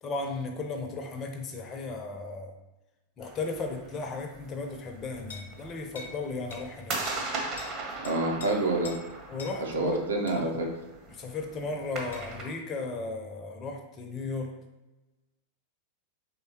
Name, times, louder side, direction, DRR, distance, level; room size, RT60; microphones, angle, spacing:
voice 1, 0.0-2.5 3.2-7.0 9.3-10.0 10.3-10.6 11.1-14.5, left 3 dB, 25° left, 3 dB, 0.6 m, -35 dB
sound 1, 3.2-12.4, right 3 dB, 35° right, 0.8 m, -40 dB
sound 2, 5.3-5.5 5.9-6.2 6.5-6.7 7.0-7.3 7.6-7.7 8.0-8.5 8.8-9.0 9.4-9.6 10.3-10.4 12.1-12.3, left 4 dB, 70° left, 0.8 m, -43 dB
voice 2, 8.0-8.9 9.6-10.7, right 2 dB, 65° right, 0 dB, 0.8 m, -27 dB
4.3 x 3.3 x 2.8 m, 1.0 s
figure-of-eight pair, 90°, 0 cm